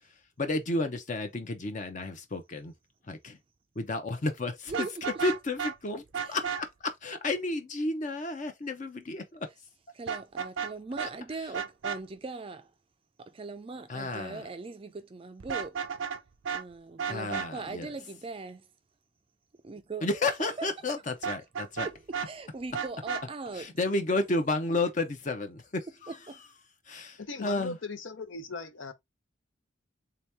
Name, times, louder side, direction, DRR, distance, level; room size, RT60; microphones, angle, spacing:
voice 1, 0.0-2.7 3.0-3.4 3.8-4.9 5.2-9.5 11.0-11.1 13.9-14.5 17.1-17.9 20.0-21.9 23.5-26.4 26.9-27.8, left 2 dB, 40° left, 0.6 m, -32 dB
Vehicle horn car horn honking, 4.7-5.7 6.1-6.6 10.1-10.7 11.0-11.1 11.5-12.0 15.4-16.2 16.4-16.6 17.0-17.5 21.2-22.3 22.7-23.2, right 7 dB, 85° right, 0.5 m, -33 dB
voice 2, 9.9-12.7 13.2-15.8 16.5-18.7 19.6-20.1 20.6-20.7 21.8-23.7 26.1-26.4, right 3 dB, 30° right, 0.4 m, -40 dB
voice 3, 27.2-28.9, left 3 dB, 80° left, 0.8 m, -38 dB
3.5 x 2.8 x 3.3 m
head